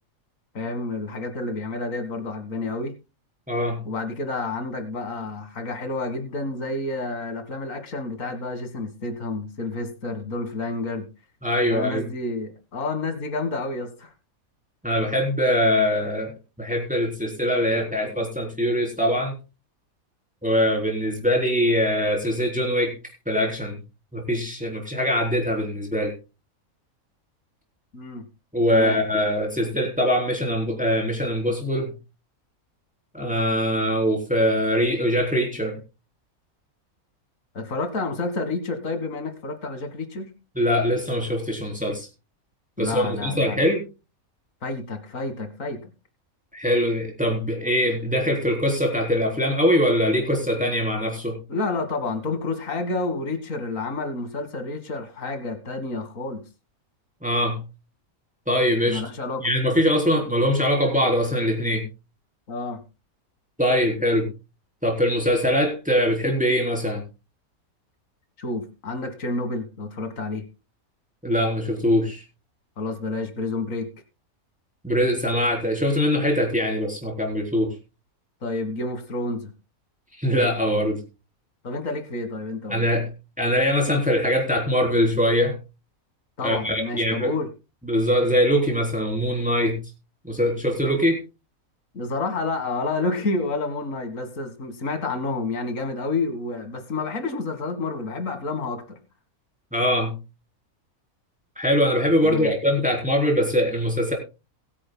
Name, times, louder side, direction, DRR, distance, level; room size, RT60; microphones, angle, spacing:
voice 1, 0.5-2.9 3.9-11.0 11.7-14.1 27.9-28.2 28.7-29.0 37.5-40.3 42.8-43.6 44.6-45.8 51.5-56.4 58.9-59.5 62.5-62.8 68.4-70.4 72.8-73.9 78.4-79.5 81.6-82.9 86.4-87.5 91.9-99.0 102.2-102.5, left 3 dB, 65° left, 8 dB, 2.1 m, -29 dB
voice 2, 3.5-3.8 11.4-12.0 14.8-16.3 16.6-19.4 20.4-22.9 23.3-23.8 24.1-26.1 28.5-31.9 33.1-35.8 40.6-42.1 42.8-43.8 46.5-51.4 57.2-57.6 58.5-59.0 59.4-61.8 63.6-64.3 64.8-67.0 71.2-72.2 74.8-77.7 80.2-81.0 82.7-83.1 83.4-85.6 86.4-87.3 87.8-89.8 90.2-91.2 99.7-100.2 101.6-104.1, equal, 5° right, 0 dB, 3.7 m, -22 dB
22.0 x 9.8 x 2.3 m, 0.29 s
omnidirectional pair, 1.5 m